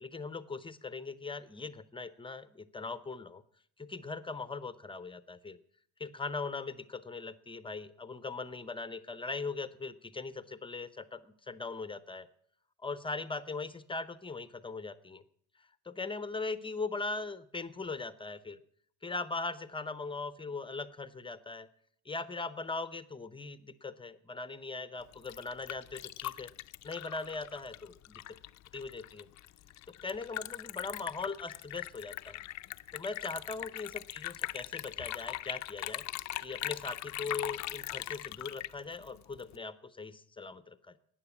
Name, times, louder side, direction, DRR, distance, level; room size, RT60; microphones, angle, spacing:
voice 1, 0.0-3.4 3.8-5.6 6.0-12.3 12.8-15.2 15.8-18.6 19.0-21.7 22.0-26.5 26.8-28.4 28.7-29.3 30.0-32.4 32.9-36.0 36.4-41.0, left 3 dB, 15° left, 15 dB, 0.7 m, -40 dB
Liquid, 25.0-39.6, left 15 dB, 50° left, 0.5 m, -41 dB
13.0 x 9.3 x 8.4 m, 0.63 s
cardioid pair, 110°, 35 cm